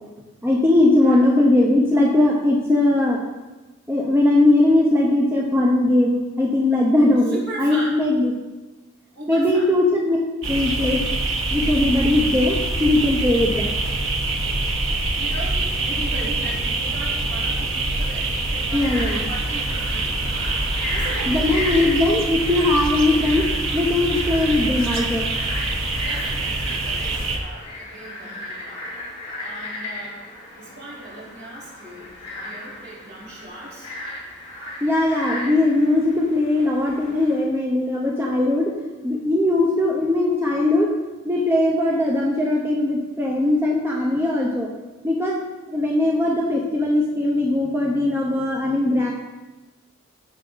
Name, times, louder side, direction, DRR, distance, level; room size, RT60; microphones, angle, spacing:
voice 1, 0.4-3.2 3.9-8.3 9.3-10.2 10.5-11.0 11.5-13.8 18.7-19.2 21.3-23.5 23.7-25.2 34.8-38.7 39.0-40.9 41.2-44.7 45.0-45.4 45.7-49.1, left 2 dB, 10° right, -2 dB, 0.8 m, -19 dB
voice 2, 7.3-7.9 9.1-9.7 15.1-20.5 20.9-21.9 26.0-28.9 29.4-30.3 30.5-33.9, right 1 dB, 50° right, -7 dB, 3.7 m, -38 dB
sound 1, 10.4-27.4, right 2 dB, 70° right, 1.3 m, -25 dB
Frog, 18.7-37.4, left 2 dB, 25° left, 3.2 m, -36 dB
14.5 x 5.8 x 4.0 m, 1.2 s
head